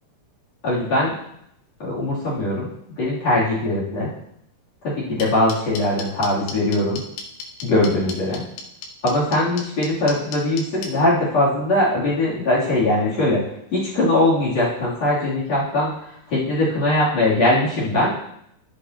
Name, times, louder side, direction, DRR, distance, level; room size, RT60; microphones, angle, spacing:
voice 1, 0.6-1.1 1.8-2.7 3.0-4.1 4.8-7.0 7.6-8.4 9.0-13.4 13.7-15.9 16.3-18.1, left 1 dB, 40° left, -6 dB, 3.4 m, -21 dB
sound 1, 5.2-10.9, left 5 dB, 90° left, 3.7 m, -33 dB
12.5 x 8.3 x 2.9 m, 0.73 s
omnidirectional pair, 5.4 m